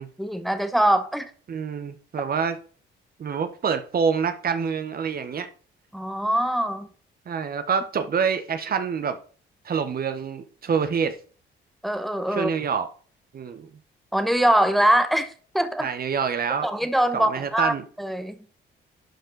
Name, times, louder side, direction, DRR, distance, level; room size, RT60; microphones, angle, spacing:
voice 1, 0.2-1.3 5.9-6.9 11.8-12.5 14.1-15.3 15.5-15.9 16.6-18.4, right 1 dB, ahead, 0.9 m, -23 dB
voice 2, 1.5-2.6 3.2-5.5 7.3-9.2 9.6-11.1 12.3-12.9 13.3-13.7 15.8-16.7 17.1-17.8, right 6 dB, 50° right, 1.0 m, -26 dB
11.5 x 4.4 x 4.0 m
cardioid pair, 90°, 20 cm